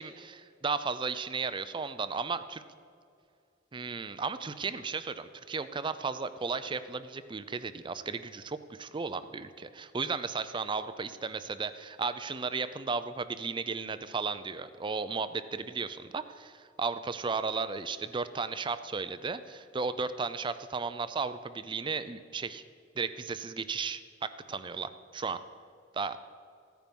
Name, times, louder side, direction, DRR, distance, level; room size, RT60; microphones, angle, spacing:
voice 1, 0.0-2.6 3.7-22.6 23.0-25.4 25.9-26.2, right 4 dB, 25° right, 12 dB, 0.5 m, -35 dB
15.0 x 9.4 x 5.4 m, 2.3 s
head